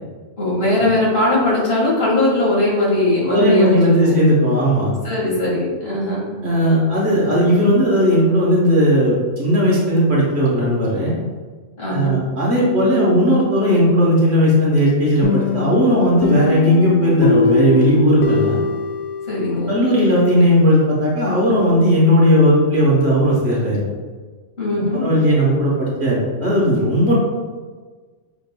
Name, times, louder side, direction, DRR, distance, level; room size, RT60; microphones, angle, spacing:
voice 1, 0.4-4.2 5.0-6.3 11.8-12.2 19.3-19.7 24.6-25.0, left 1 dB, 45° left, -6 dB, 1.8 m, -19 dB
voice 2, 3.3-4.9 6.4-11.1 11.9-18.6 19.7-23.8 25.0-27.1, equal, 55° right, -5 dB, 1.3 m, -16 dB
sound 1, 15.2-19.9, left 4 dB, 80° left, 1.1 m, -22 dB
5.8 x 3.7 x 2.2 m, 1.4 s
omnidirectional pair, 1.4 m